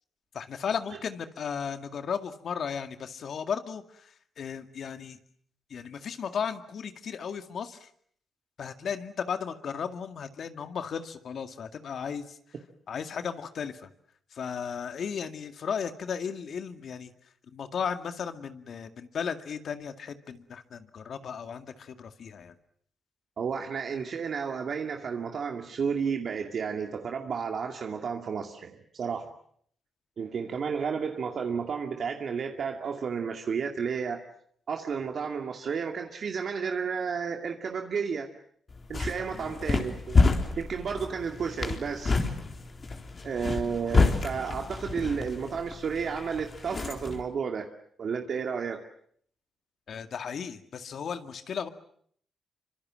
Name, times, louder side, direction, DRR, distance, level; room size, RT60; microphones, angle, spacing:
voice 1, 0.3-5.2 5.7-7.9 8.6-12.4 12.9-13.9 14.3-17.1 17.5-22.6 39.2-39.5 49.9-51.7, left 7 dB, 65° left, 8 dB, 2.1 m, -35 dB
voice 2, 23.4-29.3 30.2-34.2 34.7-38.3 38.9-40.2 40.6-42.2 43.2-47.7 48.0-48.8, right 6 dB, 60° right, 3 dB, 2.3 m, -32 dB
sound 1, 38.7-47.2, left 3 dB, 40° left, 4.0 m, -28 dB
26.5 x 25.0 x 7.6 m, 0.64 s
cardioid pair, 85°, 0 cm